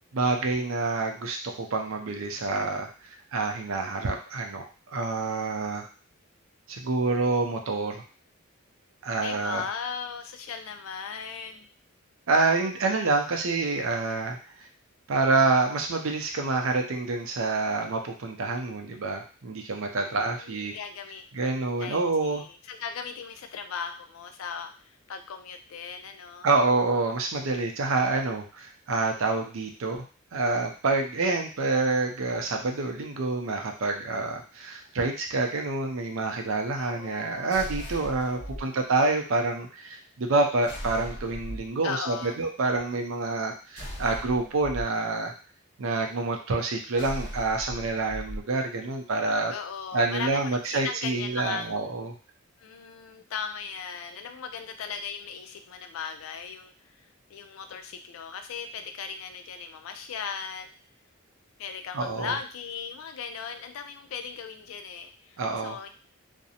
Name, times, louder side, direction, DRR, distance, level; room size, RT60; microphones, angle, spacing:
voice 1, 0.1-5.9 6.7-8.0 9.0-9.6 12.3-14.4 15.1-20.7 21.3-22.4 26.4-30.0 30.3-45.3 45.8-49.5 49.9-52.2 61.9-62.3 65.4-65.8, right 3 dB, 70° right, 3 dB, 0.5 m, -27 dB
voice 2, 9.2-11.7 20.1-21.2 21.8-26.5 36.7-37.5 38.3-38.7 41.8-42.4 49.5-51.7 52.6-56.7 57.0-60.7 61.6-65.9, left 6 dB, 75° left, 7 dB, 0.4 m, -38 dB
sound 1, 37.5-38.6 40.6-41.7 43.7-44.8 46.9-48.4, equal, 55° left, 0.8 m, -38 dB
2.5 x 2.0 x 2.7 m, 0.37 s
head